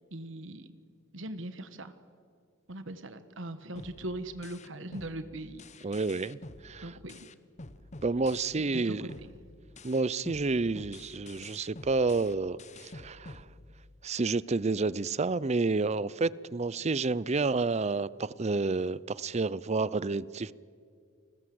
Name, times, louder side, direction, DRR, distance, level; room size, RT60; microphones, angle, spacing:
voice 1, 0.1-0.7 1.1-1.9 2.7-6.0 6.8-7.3 8.6-9.3, right 1 dB, 70° right, 11 dB, 1.4 m, -40 dB
sound 1, 3.8-8.8 9.1-14.1, left 2 dB, 35° left, 1.1 m, -49 dB
voice 2, 5.8-6.4 6.6-6.9 8.0-9.1 9.8-13.4 14.0-20.5, right 3 dB, 35° right, 20 dB, 0.6 m, -29 dB
29.5 x 20.5 x 7.8 m, 2.2 s
head